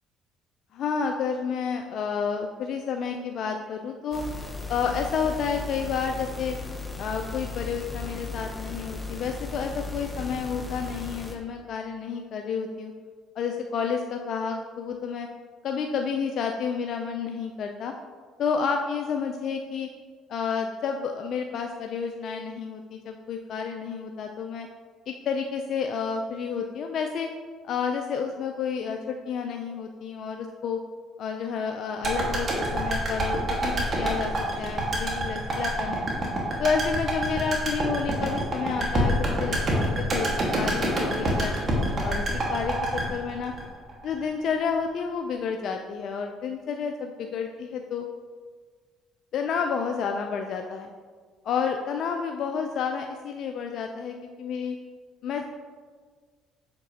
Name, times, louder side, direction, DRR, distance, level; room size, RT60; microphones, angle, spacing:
voice 1, 0.7-4.3 4.7-6.6 7.0-12.9 13.4-15.3 15.6-17.9 18.4-19.9 20.3-24.7 25.1-27.3 27.6-30.8 31.2-34.3 34.6-36.1 36.6-41.6 42.0-42.2 42.5-43.5 44.0-48.1 49.3-50.9 51.4-54.8 55.2-55.4, left 6 dB, 60° left, 4 dB, 0.4 m, -30 dB
sound 1, 4.1-11.4, left 3 dB, 10° left, 0.7 m, -36 dB
sound 2, 32.0-44.2 44.5-44.6, right 1 dB, 40° right, 1.6 m, -27 dB
6.6 x 5.1 x 2.8 m, 1.6 s
supercardioid pair, 75°, 0 cm